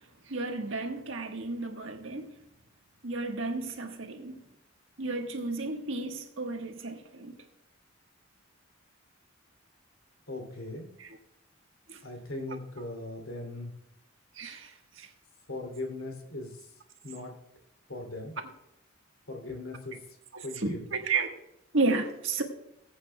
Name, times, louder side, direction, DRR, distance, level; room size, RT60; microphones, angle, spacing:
voice 1, 0.3-2.3 3.0-4.4 5.0-7.4 11.0-11.2 11.9-12.0 14.4-15.1 20.3-21.3 21.7-22.4, right 3 dB, 75° right, 1.4 m, -32 dB
voice 2, 10.3-10.9 12.0-13.7 15.5-16.7 17.0-17.3 17.9-18.3 19.3-20.0 20.4-20.9, left 2 dB, 90° left, 2.9 m, -39 dB
20.0 x 8.4 x 2.3 m
head